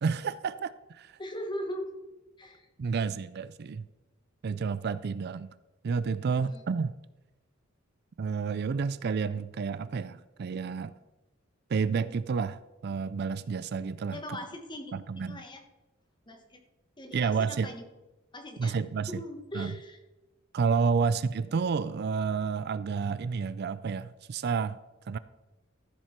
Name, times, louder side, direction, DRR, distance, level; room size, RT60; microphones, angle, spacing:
voice 1, 0.0-1.2 2.8-3.9 4.4-5.5 5.8-6.9 8.2-10.9 11.7-14.4 14.9-15.4 17.1-17.7 18.6-19.2 19.5-19.7 20.5-24.8 25.1-25.2, right 5 dB, 50° right, 16 dB, 0.4 m, -30 dB
voice 2, 1.2-1.8 2.4-2.7 6.4-6.6 14.1-15.6 16.3-16.6 17.0-17.8 18.3-18.8 19.1-20.0, left 1 dB, 20° left, 4 dB, 1.4 m, -40 dB
13.5 x 7.5 x 4.5 m, 1.1 s
head